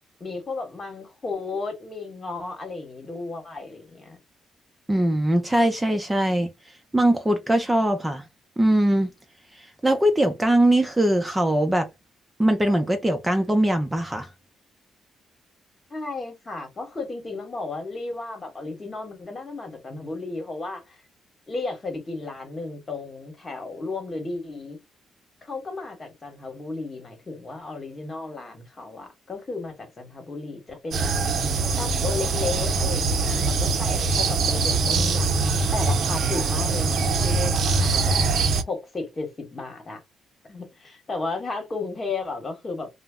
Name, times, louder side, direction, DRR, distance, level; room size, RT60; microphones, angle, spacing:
voice 1, 0.2-4.2 15.9-21.0 21.5-24.8 25.4-31.1 31.8-38.1 38.7-40.0 40.5-42.9, left 3 dB, 30° left, 1.2 m, -34 dB
voice 2, 4.9-6.5 6.9-8.2 8.6-9.1 9.6-11.9 12.4-14.3, right 1 dB, 10° right, 0.5 m, -21 dB
sound 1, 30.9-38.6, right 4 dB, 60° right, 0.5 m, -23 dB
2.2 x 2.0 x 3.6 m
cardioid pair, 90°, 0 cm